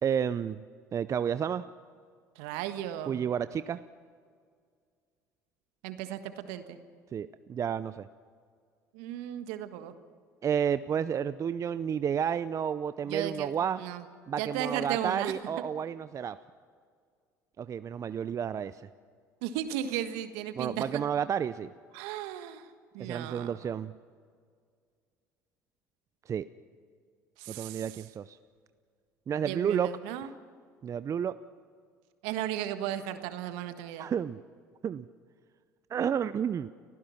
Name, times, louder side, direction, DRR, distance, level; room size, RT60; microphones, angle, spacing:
voice 1, 0.0-0.6 0.9-1.7 3.1-3.8 7.1-8.1 10.4-13.8 14.3-16.4 17.6-18.8 20.6-21.7 23.0-23.9 26.3-26.5 27.5-28.4 29.3-29.9 30.8-31.4 34.0-34.4 34.8-35.1 35.9-36.7, right 8 dB, 35° right, 14 dB, 0.6 m, -31 dB
voice 2, 2.3-3.2 5.8-6.8 8.9-9.9 13.1-13.5 13.8-14.0 14.4-15.3 19.4-21.0 21.9-22.6 22.9-23.5 27.4-27.9 29.4-30.3 32.2-34.1, right 11 dB, 70° right, 9 dB, 1.5 m, -35 dB
30.0 x 15.5 x 5.9 m, 2.1 s
hypercardioid pair, 65°, 9 cm